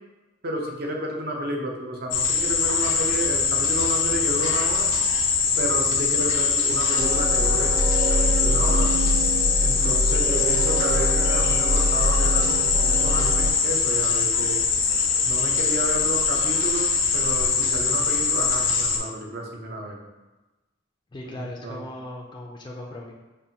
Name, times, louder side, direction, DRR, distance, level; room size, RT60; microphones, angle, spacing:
voice 1, 0.4-4.9 5.6-7.8 8.4-8.9 9.6-14.6 15.2-20.0 21.2-21.9, right 1 dB, 55° right, 0 dB, 0.7 m, -31 dB
sound 1, 2.1-19.0, left 5 dB, 85° left, 0.6 m, -23 dB
sound 2, 7.0-13.5, equal, 90° right, 0.7 m, -25 dB
voice 2, 21.1-23.1, left 1 dB, 25° left, -2 dB, 0.3 m, -37 dB
5.3 x 2.5 x 2.7 m, 1.1 s
head